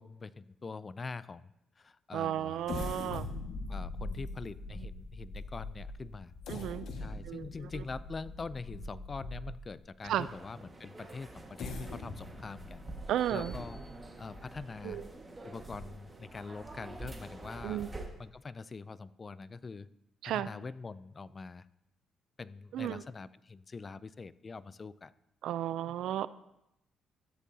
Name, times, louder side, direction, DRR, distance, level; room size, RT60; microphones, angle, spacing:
voice 1, 0.0-2.7 3.1-6.3 7.0-12.8 13.3-13.8 14.2-15.0 15.4-17.8 18.2-19.9 20.2-21.6 22.4-25.1, left 4 dB, 35° left, 17 dB, 0.4 m, -44 dB
voice 2, 2.1-3.3 4.8-4.9 6.5-6.9 7.3-7.5 7.7-7.8 10.0-10.3 13.1-13.5 14.8-15.1 17.6-17.9 20.2-20.5 22.7-23.0 25.4-26.3, right 11 dB, 80° right, 15 dB, 0.4 m, -33 dB
sound 1, 2.6-9.8 10.4-10.5 11.3-14.9 15.3-15.4 15.9-16.1, left 2 dB, 75° left, 1.6 m, -42 dB
sound 2, 10.0-18.1, right 2 dB, 20° right, 1.6 m, -47 dB
13.5 x 10.0 x 2.8 m, 0.82 s
cardioid pair, 90°, 0 cm